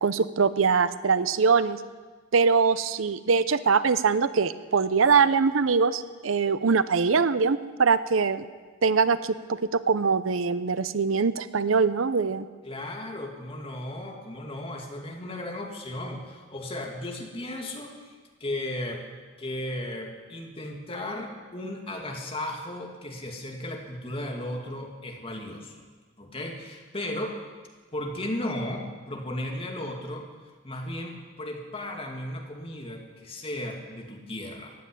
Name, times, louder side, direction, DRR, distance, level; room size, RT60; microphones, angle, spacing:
voice 1, 0.0-1.8 2.3-8.5 8.8-12.5, right 5 dB, 80° right, 14 dB, 0.6 m, -23 dB
voice 2, 12.6-19.0 19.4-25.8 26.2-27.4 27.9-30.3 30.6-34.7, left 1 dB, 30° left, 2 dB, 2.3 m, -35 dB
15.5 x 9.3 x 9.9 m, 1.4 s
head